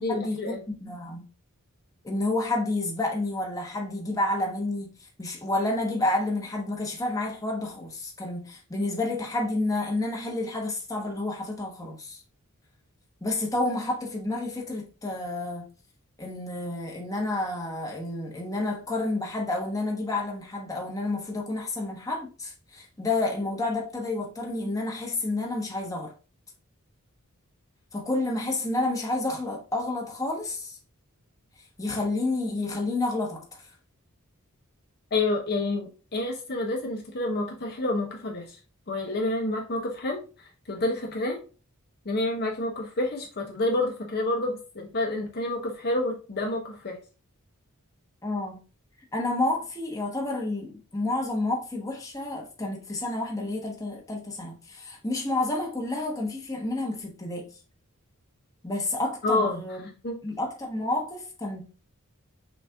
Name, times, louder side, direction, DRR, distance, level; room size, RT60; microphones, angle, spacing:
voice 1, 0.0-0.6 35.1-38.6 38.9-41.4 42.0-47.0 59.2-59.6 60.0-60.2, left 2 dB, 45° left, 0.8 m, -28 dB
voice 2, 0.7-1.2 2.0-4.9 5.2-12.2 13.2-15.7 16.2-26.1 27.9-30.8 31.8-33.6 48.2-48.6 49.1-57.5 58.6-59.8 60.2-61.6, left 2 dB, 15° left, 1.1 m, -30 dB
6.0 x 2.6 x 3.5 m
head